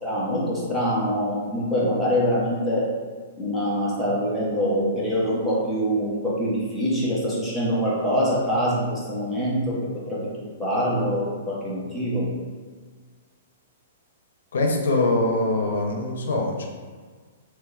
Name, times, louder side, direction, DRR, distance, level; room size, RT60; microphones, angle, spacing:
voice 1, 0.0-2.9 3.4-9.8 10.1-12.3, equal, 5° right, -8 dB, 0.6 m, -24 dB
voice 2, 14.5-16.7, left 2 dB, 90° left, 1 dB, 0.6 m, -23 dB
3.3 x 3.0 x 2.3 m, 1.5 s
hypercardioid pair, 175°, 0 cm